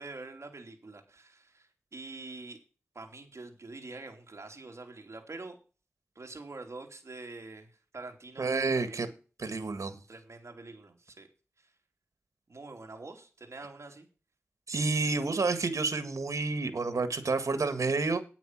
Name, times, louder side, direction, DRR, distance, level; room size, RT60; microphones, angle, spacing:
voice 1, 0.0-2.6 2.9-5.5 6.1-9.0 10.1-11.3 11.6-11.7 12.5-14.1, right 3 dB, 60° right, 3.1 m, -46 dB
voice 2, 8.4-9.1 9.4-10.0 14.7-18.2, right 3 dB, 90° right, 1.7 m, -29 dB
9.6 x 9.2 x 6.0 m
wide cardioid pair, 65°, 5 cm